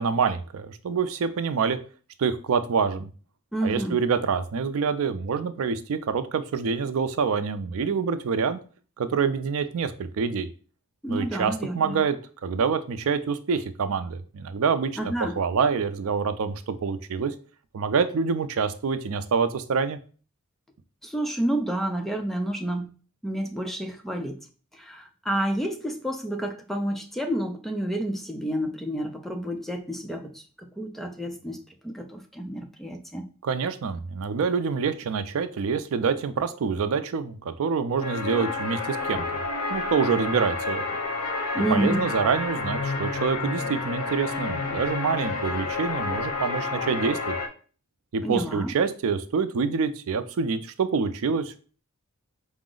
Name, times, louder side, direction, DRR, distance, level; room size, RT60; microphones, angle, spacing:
voice 1, 0.0-1.8 2.2-3.1 3.6-8.6 9.0-10.5 11.1-12.2 12.4-14.9 15.4-17.3 17.7-20.0 33.4-39.3 39.7-40.8 41.7-47.4 48.1-51.6, right 5 dB, 65° right, 11 dB, 0.4 m, -26 dB
voice 2, 3.5-4.0 11.0-12.0 15.0-15.4 21.0-22.9 23.2-24.4 24.7-33.3 41.5-42.1 48.2-48.7, right 1 dB, ahead, 4 dB, 0.4 m, -29 dB
sound 1, 38.0-47.5, left 3 dB, 85° left, 0.7 m, -30 dB
4.8 x 2.0 x 3.7 m, 0.39 s
head